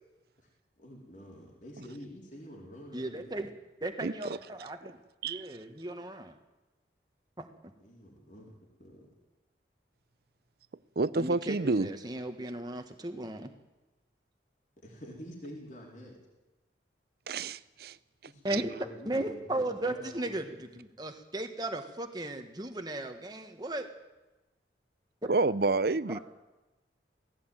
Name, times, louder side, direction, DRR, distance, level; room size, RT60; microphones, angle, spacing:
voice 1, 0.8-3.5 7.8-8.5 8.8-9.1 14.8-16.2 18.3-20.8, equal, 45° left, -2 dB, 4.0 m, -48 dB
voice 2, 2.9-3.5 3.8-5.0 5.2-6.4 7.4-7.5 11.1-13.5 18.4-18.7 19.0-23.9, right 1 dB, 25° right, 5 dB, 1.6 m, -36 dB
voice 3, 4.0-4.4 5.2-5.5 11.0-11.9 17.3-18.0 18.5-18.6 25.3-26.2, right 3 dB, 60° right, 17 dB, 0.6 m, -29 dB
17.5 x 16.0 x 9.2 m, 1.1 s
head